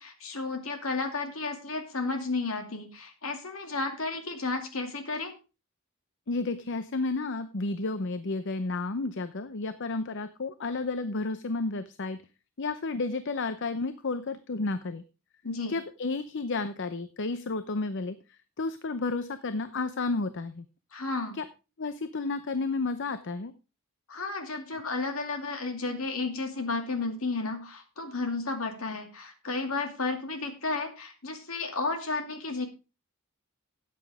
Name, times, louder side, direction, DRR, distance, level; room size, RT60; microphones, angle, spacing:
voice 1, 0.0-5.3 15.4-15.7 20.9-21.4 24.1-32.7, left 3 dB, 75° left, 5 dB, 2.4 m, -32 dB
voice 2, 6.3-12.2 12.6-15.0 15.7-18.2 18.6-20.6 21.3-21.5 21.8-23.5, left 3 dB, 60° left, 12 dB, 0.7 m, -31 dB
13.5 x 9.3 x 3.5 m, 0.30 s
head